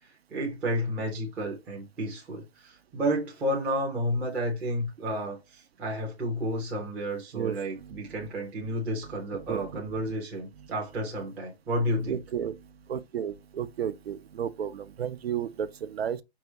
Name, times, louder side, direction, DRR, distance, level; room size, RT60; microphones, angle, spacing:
voice 1, 0.0-12.2, equal, 5° right, 0.4 m, -31 dB
voice 2, 7.3-8.0 9.5-9.6 12.1-12.6 12.9-16.2, right 8 dB, 65° right, 0.6 m, -33 dB
4.8 x 2.9 x 2.7 m
figure-of-eight pair, 135°, 33 cm